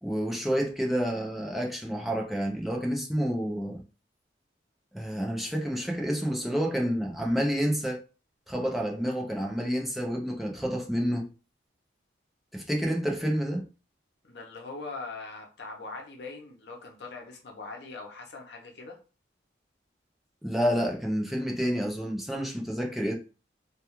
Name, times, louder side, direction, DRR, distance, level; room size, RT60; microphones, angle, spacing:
voice 1, 0.0-3.8 4.9-8.0 8.5-11.3 12.5-13.7 20.4-23.1, equal, ahead, 0.4 m, -29 dB
voice 2, 14.2-19.0, left 3 dB, 65° left, 0.7 m, -41 dB
2.3 x 2.2 x 2.9 m
head